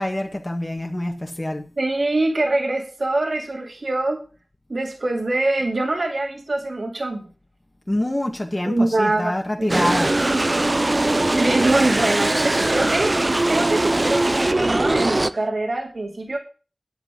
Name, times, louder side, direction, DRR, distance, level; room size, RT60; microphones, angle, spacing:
voice 1, 0.0-1.7 7.9-10.1, left 1 dB, 25° left, 2 dB, 1.8 m, -25 dB
voice 2, 1.8-4.2 4.7-7.2 8.7-9.3 9.6-9.9 11.3-13.1 13.5-16.4, right 2 dB, 70° right, 2 dB, 2.4 m, -23 dB
sound 1, 9.7-15.3, right 2 dB, 40° right, 0.6 m, -20 dB
10.5 x 8.1 x 6.1 m, 0.36 s
wide cardioid pair, 65°, 0 cm